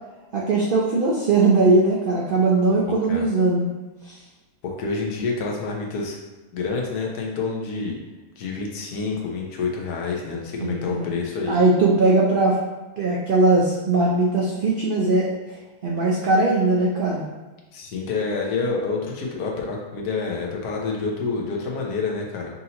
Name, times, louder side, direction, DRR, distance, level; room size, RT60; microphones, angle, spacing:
voice 1, 0.3-3.7 4.1-4.2 10.6-11.1 11.5-12.6 13.0-15.6 15.8-17.3, right 2 dB, 80° right, -3 dB, 0.4 m, -20 dB
voice 2, 2.7-3.3 4.6-6.2 6.5-8.0 8.4-11.6 17.7-22.5, left 4 dB, 90° left, -1 dB, 1.3 m, -28 dB
5.4 x 2.7 x 2.8 m, 1.2 s
omnidirectional pair, 1.6 m